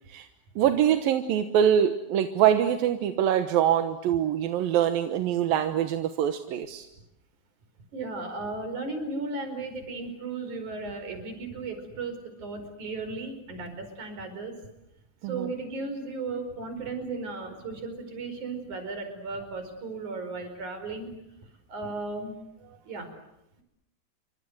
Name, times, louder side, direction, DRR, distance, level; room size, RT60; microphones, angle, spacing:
voice 1, 0.6-6.9 15.2-15.5, right 10 dB, 85° right, 7 dB, 3.0 m, -24 dB
voice 2, 7.9-14.5 15.2-21.1 21.7-22.4 22.9-23.1, right 3 dB, 55° right, 7 dB, 6.2 m, -35 dB
28.5 x 24.5 x 8.0 m, 0.84 s
omnidirectional pair, 4.0 m